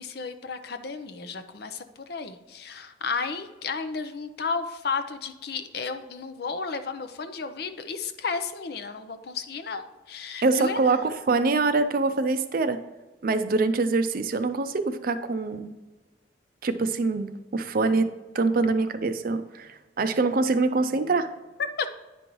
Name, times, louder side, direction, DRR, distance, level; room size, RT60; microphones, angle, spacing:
voice 1, 0.0-10.9 21.8-21.9, left 5 dB, 60° left, 9 dB, 0.6 m, -33 dB
voice 2, 10.4-12.8 13.2-15.7 16.6-18.1 18.3-21.3, right 3 dB, 50° right, 10 dB, 0.5 m, -24 dB
9.9 x 5.3 x 3.1 m, 1.1 s
head